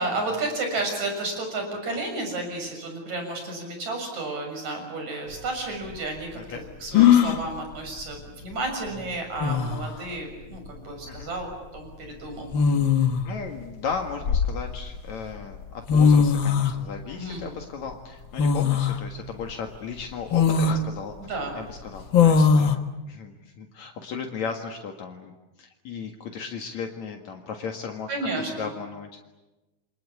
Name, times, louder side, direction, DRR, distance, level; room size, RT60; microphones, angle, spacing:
voice 1, 0.0-12.5 17.1-17.4 21.2-21.5 28.1-28.7, right 2 dB, 70° right, 3 dB, 8.2 m, -32 dB
sound 1, 5.3-5.4 6.9-7.4 8.9-9.0 9.4-9.9 11.2-11.4 12.5-13.3 13.9-15.0 15.6-15.7 15.9-16.8 18.4-19.0 19.5-19.6 20.3-20.8 22.1-22.8, left 6 dB, 50° left, 1.7 m, -19 dB
voice 2, 12.9-25.3 25.6-28.1 28.4-29.2, left 5 dB, 70° left, 3 dB, 3.1 m, -36 dB
28.5 x 25.0 x 8.5 m, 1.1 s
omnidirectional pair, 3.4 m